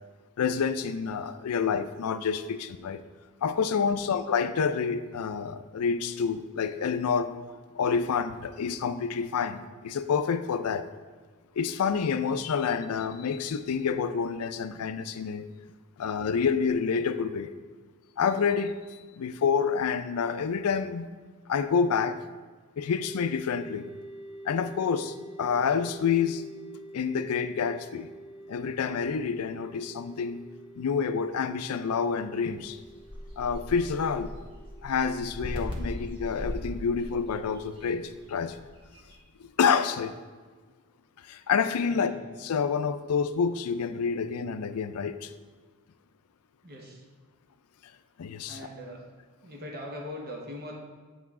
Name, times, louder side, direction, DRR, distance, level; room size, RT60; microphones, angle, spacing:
voice 1, 0.4-3.0 3.4-7.3 7.7-10.9 11.5-15.4 16.0-17.5 18.2-18.7 19.2-21.1 21.5-22.2 22.8-23.9 24.5-26.4 26.9-28.1 28.5-30.4 30.8-32.8 33.4-34.3 34.8-38.6 39.4-40.1 41.2-42.1 42.4-45.3 48.2-48.6, left 6 dB, 75° left, 12 dB, 0.4 m, -28 dB
sound 1, 22.9-36.8, right 1 dB, 75° right, 1.8 m, -47 dB
sound 2, 32.4-39.2, equal, 25° right, 1.2 m, -40 dB
voice 2, 41.9-42.2 46.6-47.1 48.4-49.1 49.4-50.7, left 1 dB, 45° right, -1 dB, 1.0 m, -41 dB
8.0 x 4.8 x 3.6 m, 1.4 s
head